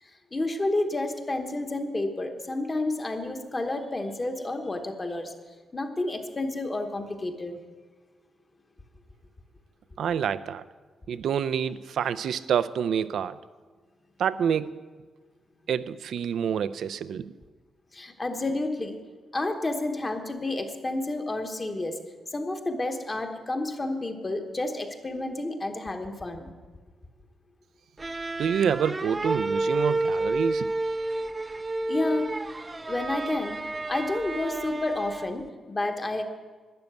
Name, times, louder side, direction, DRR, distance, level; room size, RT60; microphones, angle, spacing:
voice 1, 0.0-5.3 5.7-7.6 17.9-19.0 19.3-22.0 22.3-26.5 31.9-32.3 32.9-33.6 33.9-36.2, left 2 dB, 20° left, 5 dB, 1.0 m, -30 dB
voice 2, 10.0-10.6 11.1-13.4 14.2-14.8 15.7-17.3 28.4-30.7, right 8 dB, 75° right, 16 dB, 0.5 m, -27 dB
sound 1, 28.0-35.5, right 2 dB, 20° right, 0.5 m, -30 dB
12.5 x 10.0 x 8.0 m, 1.4 s
wide cardioid pair, 175°, 0 cm